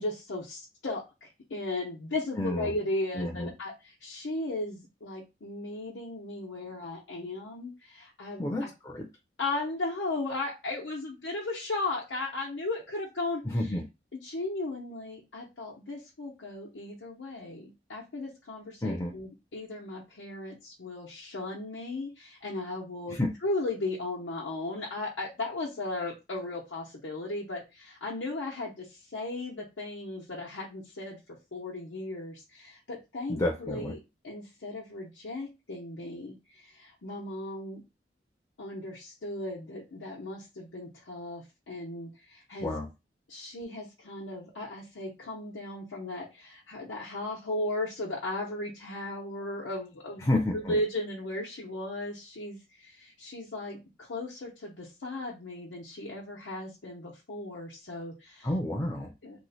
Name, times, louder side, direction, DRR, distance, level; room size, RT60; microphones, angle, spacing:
voice 1, 0.0-8.7 9.4-13.4 14.2-31.2 31.5-34.0 34.2-37.8 38.6-42.8 43.3-50.3 50.5-58.5 59.2-59.4, left 2 dB, 90° left, -4 dB, 0.8 m, -36 dB
voice 2, 2.4-2.7 3.1-3.5 8.4-9.1 13.4-13.8 18.8-19.1 23.1-23.3 33.3-34.0 42.6-42.9 50.2-50.8 58.4-59.1, left 1 dB, 20° left, 2 dB, 0.4 m, -30 dB
3.0 x 2.1 x 4.0 m, 0.25 s
head